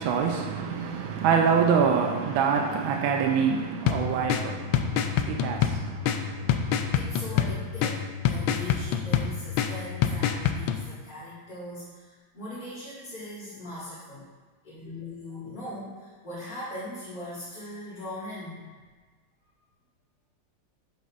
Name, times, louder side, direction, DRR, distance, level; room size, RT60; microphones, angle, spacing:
voice 1, 0.0-7.0, right 6 dB, 85° right, 1.5 m, -26 dB
sound 1, 3.9-10.8, left 8 dB, 85° left, 1.4 m, -27 dB
voice 2, 6.6-14.3 14.6-18.7 19.4-19.5, left 1 dB, 60° left, 3.4 m, -40 dB
12.5 x 8.3 x 2.5 m
omnidirectional pair, 2.2 m